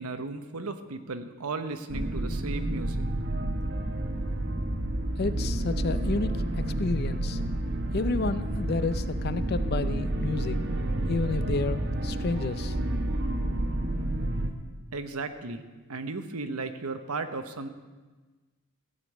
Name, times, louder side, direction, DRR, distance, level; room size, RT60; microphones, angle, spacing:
voice 1, 0.0-3.0 14.9-17.7, right 3 dB, 85° right, 9 dB, 0.9 m, -35 dB
sound 1, 1.9-14.5, right 1 dB, 50° right, 1.0 m, -29 dB
voice 2, 5.2-7.4 7.9-10.6 11.1-12.7, left 3 dB, 45° left, 13 dB, 0.5 m, -31 dB
15.0 x 5.2 x 8.6 m, 1.3 s
head